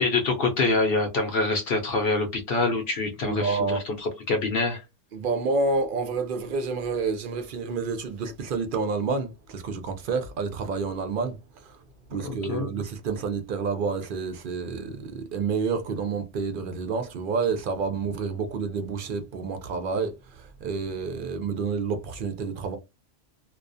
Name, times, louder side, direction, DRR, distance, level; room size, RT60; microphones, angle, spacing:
voice 1, 0.0-4.8 12.2-12.7, left 3 dB, 60° left, 0.7 m, -25 dB
voice 2, 3.2-3.8 5.1-11.8 12.1-22.8, right 4 dB, 60° right, 0.5 m, -29 dB
2.3 x 2.3 x 2.4 m
omnidirectional pair, 1.3 m